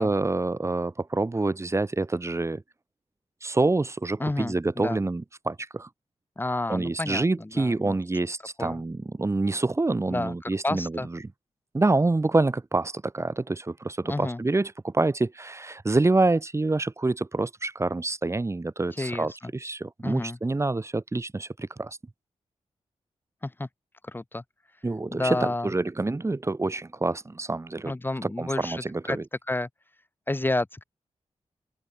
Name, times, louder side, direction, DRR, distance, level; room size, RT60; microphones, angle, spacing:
voice 1, 0.0-2.6 3.4-5.9 6.7-11.0 11.7-22.0 24.8-27.9 28.2-29.2, right 2 dB, 25° right, 4.5 m, -27 dB
voice 2, 4.2-5.0 6.4-8.0 8.6-8.8 10.1-11.1 14.0-14.4 19.0-19.5 20.0-20.4 23.4-23.7 24.0-24.4 25.1-25.7 27.8-29.2 29.5-29.7 30.3-30.8, left 2 dB, 20° left, 4.4 m, -30 dB
open air
wide cardioid pair, 120°, 11 cm